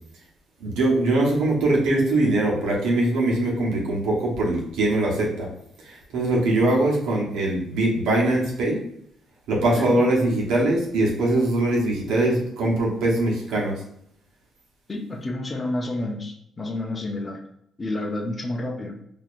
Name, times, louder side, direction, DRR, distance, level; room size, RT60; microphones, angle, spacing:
voice 1, 0.6-5.5 5.8-8.8 9.5-13.8, right 2 dB, 90° right, -3 dB, 1.1 m, -22 dB
voice 2, 14.9-17.4 17.8-19.0, left 2 dB, 30° left, 2 dB, 0.7 m, -30 dB
4.5 x 2.8 x 2.5 m, 0.74 s
cardioid pair, 90°, 0 cm